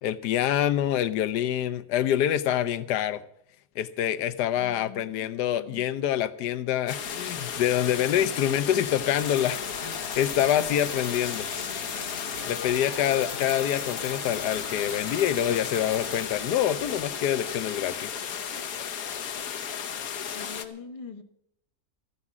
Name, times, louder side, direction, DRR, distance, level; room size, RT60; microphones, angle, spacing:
voice 1, 0.0-3.2 3.8-11.5 12.5-18.2, left 11 dB, 90° left, 1.3 m, -26 dB
voice 2, 4.6-5.8 18.1-21.2, left 5 dB, 25° left, 1.0 m, -46 dB
sound 1, 6.9-20.7, left 8 dB, 65° left, 1.4 m, -35 dB
sound 2, 7.0-17.0, equal, 65° right, 4.3 m, -47 dB
sound 3, 9.2-16.2, left 5 dB, 45° left, 1.6 m, -39 dB
13.5 x 9.6 x 7.4 m
omnidirectional pair, 1.7 m